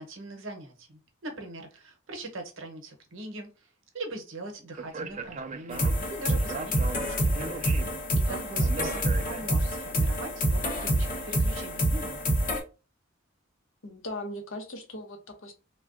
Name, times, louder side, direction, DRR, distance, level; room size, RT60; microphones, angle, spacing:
voice 1, 0.0-3.7 3.9-7.4 8.3-12.4, right 2 dB, 75° right, 0.8 m, -41 dB
Speech, 4.8-9.8, right 4 dB, 35° right, 0.3 m, -39 dB
sound 1, 5.7-12.6, right 1 dB, 45° left, 0.8 m, -27 dB
voice 2, 8.3-8.7 13.8-15.5, left 1 dB, 75° left, 0.7 m, -39 dB
3.4 x 2.2 x 2.5 m
head